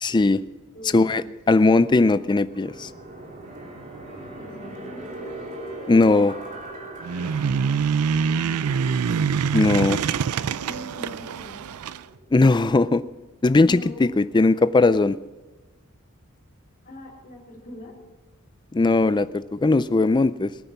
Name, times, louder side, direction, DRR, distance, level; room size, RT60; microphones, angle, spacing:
voice 1, 0.0-0.4 0.9-2.9 5.9-6.4 9.5-10.0 12.3-13.0 13.4-15.2 18.7-20.5, left 3 dB, 20° left, 15 dB, 0.4 m, -19 dB
voice 2, 0.7-1.1 4.3-5.0 8.1-8.8 10.6-11.8 13.6-14.1 16.8-17.9, left 1 dB, 40° left, -3 dB, 4.3 m, -41 dB
sound 1, 2.2-12.8, right 1 dB, 35° right, 3.0 m, -41 dB
sound 2, 7.0-12.0, right 6 dB, 85° right, 0.4 m, -25 dB
19.5 x 9.1 x 5.9 m, 1.2 s
head